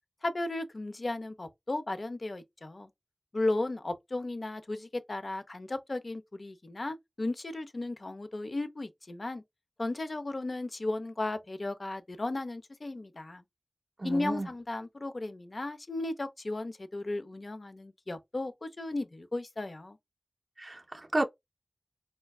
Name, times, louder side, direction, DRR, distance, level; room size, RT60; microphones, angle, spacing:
voice 1, 0.2-2.9 3.3-9.4 9.8-13.4 14.0-20.0, left 2 dB, 55° left, 0.5 m, -35 dB
voice 2, 14.0-14.5 20.6-21.2, right 2 dB, 40° right, 0.4 m, -31 dB
4.2 x 2.2 x 2.3 m
wide cardioid pair, 50°, 0 cm